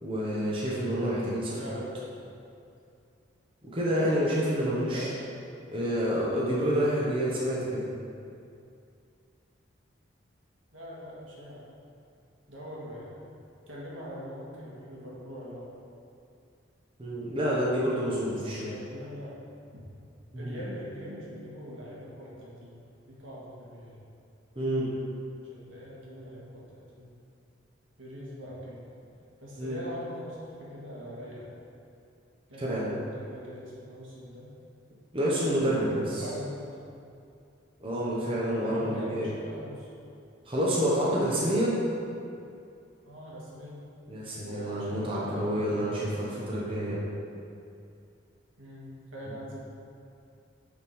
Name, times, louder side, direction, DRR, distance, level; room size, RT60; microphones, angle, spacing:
voice 1, 0.0-1.8 3.6-5.1 5.7-7.8 17.0-18.7 20.3-20.6 24.6-24.9 29.6-29.8 32.6-32.9 35.1-36.2 37.8-39.3 40.5-41.8 44.1-47.0, equal, 25° right, -6 dB, 1.0 m, -28 dB
voice 2, 1.5-2.1 4.6-5.1 5.8-6.0 10.7-11.7 12.5-13.2 13.7-15.7 18.2-19.4 19.7-19.8 20.3-22.8 23.1-24.0 25.4-27.1 28.0-28.8 29.4-31.5 32.5-34.5 35.8-36.8 38.6-39.9 43.0-43.8 44.4-46.7 48.6-49.6, equal, 80° right, -6 dB, 1.7 m, -42 dB
7.1 x 3.7 x 5.4 m, 2.5 s
head